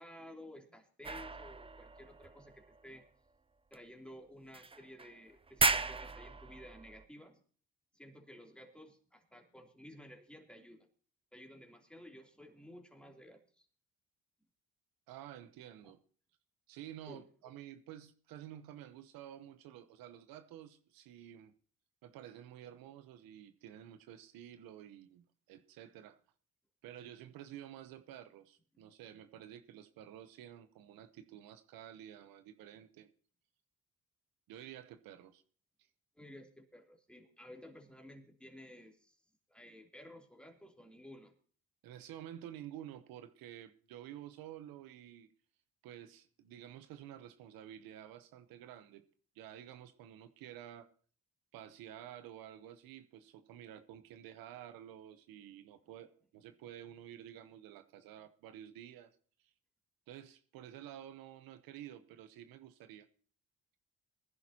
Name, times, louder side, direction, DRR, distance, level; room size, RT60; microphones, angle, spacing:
voice 1, 0.0-3.0 3.7-7.4 7.9-10.9 11.3-13.7 15.8-15.9 17.1-17.2 36.1-39.2 39.5-41.3, left 1 dB, 5° left, 3.1 m, -54 dB
sound 1, 1.0-3.0 3.7-3.8 4.5-5.1 5.5-7.0, right 3 dB, 15° right, 0.7 m, -36 dB
voice 2, 15.1-16.0 16.7-21.5 22.0-26.2 26.8-33.1 34.5-35.4 41.8-45.3 45.8-49.0 49.3-50.9 51.5-59.2 60.1-63.1, right 11 dB, 85° right, 0.9 m, -51 dB
20.0 x 11.0 x 2.9 m
supercardioid pair, 75°, 34 cm